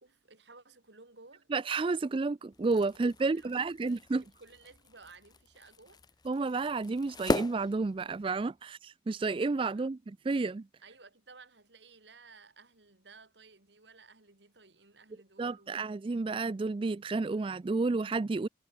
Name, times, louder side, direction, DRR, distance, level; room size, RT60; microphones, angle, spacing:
voice 1, 0.0-1.5 2.9-6.0 9.7-9.9 10.8-15.9, right 3 dB, 75° right, 3.4 m, -56 dB
voice 2, 1.5-4.2 6.3-10.7 15.4-18.5, right 3 dB, 30° right, 0.4 m, -31 dB
sound 1, 2.5-8.5, left 2 dB, 25° left, 0.7 m, -39 dB
head